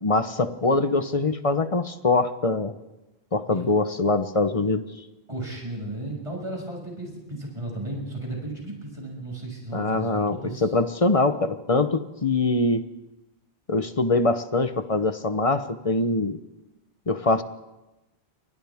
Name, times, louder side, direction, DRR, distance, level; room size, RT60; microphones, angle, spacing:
voice 1, 0.0-2.7 3.3-4.8 9.7-12.8 13.7-16.4 17.1-17.4, left 3 dB, 35° left, 10 dB, 1.0 m, -23 dB
voice 2, 5.3-10.7, right 1 dB, 30° right, -1 dB, 6.2 m, -34 dB
30.0 x 24.0 x 3.6 m, 1.0 s
omnidirectional pair, 1.1 m